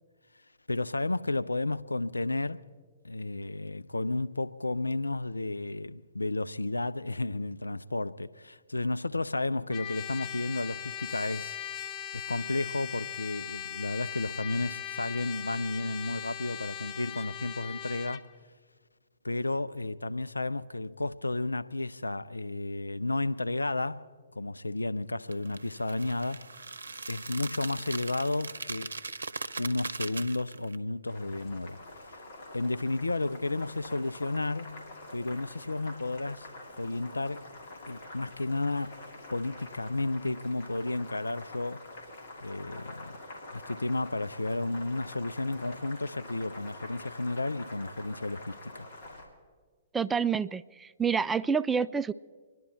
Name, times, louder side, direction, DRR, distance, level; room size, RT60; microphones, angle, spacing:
voice 1, 0.7-2.7 3.0-11.6 12.1-18.3 19.2-26.5 27.1-28.9 29.6-31.8 32.1-32.2 32.5-34.9 35.1-36.5 36.8-37.5 37.9-39.0 39.3-41.8 42.4-43.2 43.5-48.9, left 2 dB, 90° left, 0.5 m, -32 dB
Trumpet, 9.7-18.2, left 10 dB, 30° left, 0.7 m, -39 dB
sound 1, 25.3-30.8, right 3 dB, 80° right, 0.7 m, -40 dB
Boiling, 31.0-49.3, left 2 dB, 55° left, 3.1 m, -46 dB
voice 2, 49.9-52.1, right 6 dB, 10° right, 0.4 m, -28 dB
26.0 x 11.0 x 4.4 m
figure-of-eight pair, 115°, 0 cm